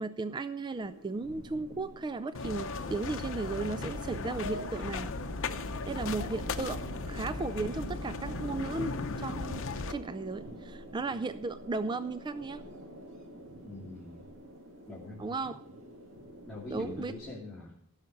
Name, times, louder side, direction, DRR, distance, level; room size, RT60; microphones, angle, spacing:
voice 1, 0.0-5.1 5.9-9.6 9.9-12.6 15.2-15.6 16.7-17.1, right 3 dB, 20° right, 12 dB, 0.3 m, -35 dB
sound 1, 0.7-17.3, equal, 60° right, 2.0 m, -47 dB
sound 2, 2.3-9.9, left 3 dB, 60° left, 0.8 m, -36 dB
voice 2, 13.6-14.3 14.9-15.3 16.5-17.7, left 2 dB, 5° left, -8 dB, 2.7 m, -43 dB
16.0 x 6.5 x 5.3 m, 0.69 s
head